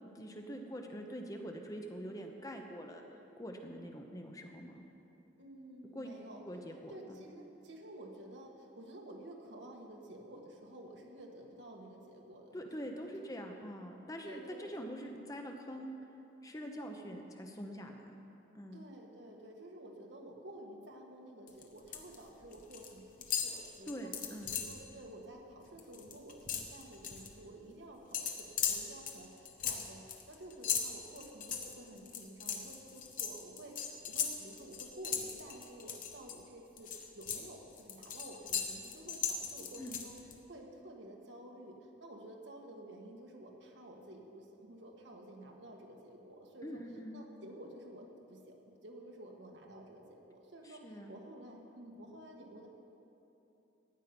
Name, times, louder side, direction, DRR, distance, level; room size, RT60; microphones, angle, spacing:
voice 1, 0.2-3.0 3.4-4.8 5.9-6.1 6.5-7.2 12.5-15.9 16.4-18.1 18.5-18.8 23.9-24.6 39.8-40.0 46.6-47.2 50.6-51.1, equal, 20° left, 3 dB, 0.9 m, -44 dB
voice 2, 5.4-6.6 6.9-12.6 12.8-12.9 13.2-13.4 14.2-14.6 15.0-15.2 16.8-17.2 18.7-24.1 24.5-40.1 40.4-46.8 47.1-52.7, right 1 dB, 75° right, 0 dB, 1.8 m, -51 dB
sound 1, 21.5-22.1 22.4-22.9 23.2-24.8 25.2-25.4 25.7-27.3 28.1-36.3 36.8-40.3, left 7 dB, 45° left, 1.2 m, -38 dB
16.0 x 5.6 x 9.8 m, 2.9 s
head